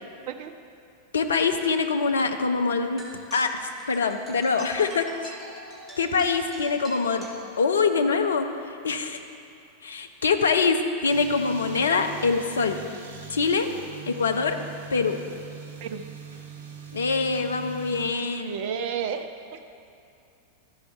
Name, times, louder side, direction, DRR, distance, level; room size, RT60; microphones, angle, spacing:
voice 1, 1.1-3.0 3.3-3.6 3.9-5.4 6.0-7.3 7.6-9.2 9.8-12.8 13.3-13.7 14.1-14.6 14.9-15.2 16.9-18.5, left 4 dB, 70° left, 6 dB, 0.5 m, -24 dB
sound 1, 3.0-8.0, right 1 dB, 5° left, 1.8 m, -45 dB
sound 2, 11.1-18.1, right 6 dB, 65° right, 0.9 m, -42 dB
voice 2, 18.4-19.6, right 7 dB, 50° right, 6 dB, 0.4 m, -32 dB
13.0 x 4.7 x 3.7 m, 2.6 s
figure-of-eight pair, 90°, 0 cm